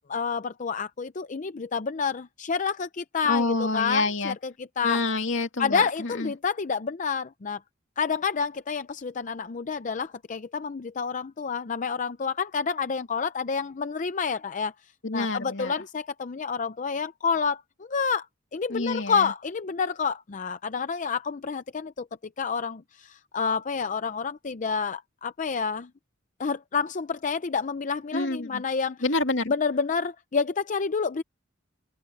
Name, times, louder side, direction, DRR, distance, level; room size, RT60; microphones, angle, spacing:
voice 1, 0.1-5.0 5.6-7.6 8.0-14.7 15.1-18.3 18.5-22.1 22.4-25.9 26.4-29.0 29.5-31.2, left 5 dB, 40° left, 0.5 m, -29 dB
voice 2, 3.3-4.4 4.8-6.3 15.0-15.7 18.7-19.3 28.1-28.6 29.0-29.5, left 3 dB, 75° left, 2.5 m, -27 dB
open air
head